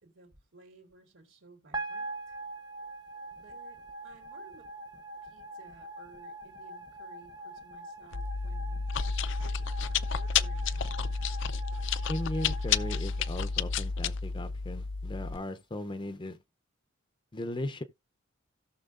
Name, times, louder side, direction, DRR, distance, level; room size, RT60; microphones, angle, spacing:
voice 1, 0.0-2.4 3.3-4.7 5.2-8.9 9.9-11.0, right 3 dB, 70° right, 3.0 m, -57 dB
sound 1, 1.7-14.0, right 2 dB, 20° right, 0.9 m, -43 dB
Chewing mastication, 8.1-15.4, left 5 dB, 65° left, 0.5 m, -31 dB
voice 2, 12.1-16.4 17.3-17.8, left 1 dB, 25° left, 0.6 m, -37 dB
17.0 x 6.0 x 2.5 m
head